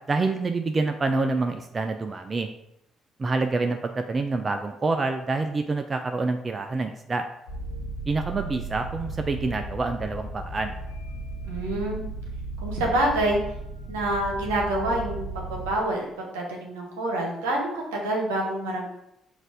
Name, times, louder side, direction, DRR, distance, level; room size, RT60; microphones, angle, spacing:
voice 1, 0.1-2.5 3.2-7.2 8.1-10.7, right 3 dB, 35° right, 6 dB, 0.4 m, -27 dB
sound 1, 7.5-15.8, right 2 dB, 90° left, 0.7 m, -35 dB
voice 2, 11.5-12.0 12.6-13.4 13.9-18.9, right 1 dB, 80° right, -1 dB, 0.9 m, -27 dB
4.0 x 2.6 x 4.8 m, 0.81 s
hypercardioid pair, 45°, 0 cm